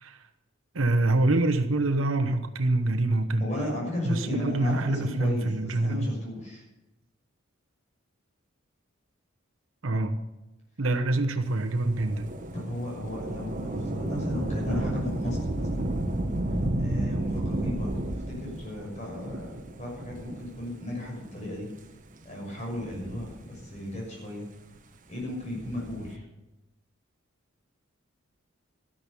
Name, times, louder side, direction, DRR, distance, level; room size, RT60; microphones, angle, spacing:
voice 1, 0.7-3.5 4.0-6.1 9.8-10.2 10.8-12.3, right 2 dB, 75° right, 7 dB, 1.0 m, -25 dB
voice 2, 3.4-6.6 12.5-15.9 16.8-19.5 19.8-21.7 22.2-24.5 25.1-26.2, left 1 dB, 35° left, -2 dB, 6.4 m, -35 dB
Thunder / Rain, 11.8-20.8 21.6-21.7 22.6-23.9 25.4-26.1, right 1 dB, 40° right, 1.1 m, -32 dB
14.0 x 10.5 x 6.9 m, 1.0 s
head